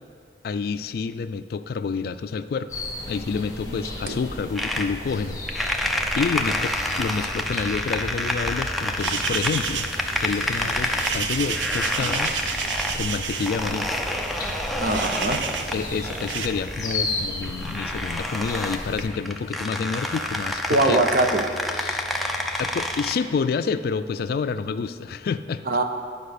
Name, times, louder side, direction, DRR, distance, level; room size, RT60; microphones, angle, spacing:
voice 1, 0.4-5.9 6.1-9.9 10.2-12.4 12.9-13.9 15.7-21.0 21.8-22.0 22.6-25.6, left 5 dB, 55° left, 12 dB, 0.3 m, -28 dB
sound 1, 2.7-19.1, left 2 dB, 20° left, 1.3 m, -35 dB
sound 2, 4.6-23.2, left 1 dB, ahead, 0.5 m, -29 dB
sound 3, 9.0-16.5, right 6 dB, 85° right, 0.6 m, -31 dB
voice 2, 14.8-15.4 20.7-21.5 25.7-25.8, right 2 dB, 50° right, 5 dB, 0.7 m, -22 dB
10.5 x 5.0 x 6.6 m, 2.2 s
head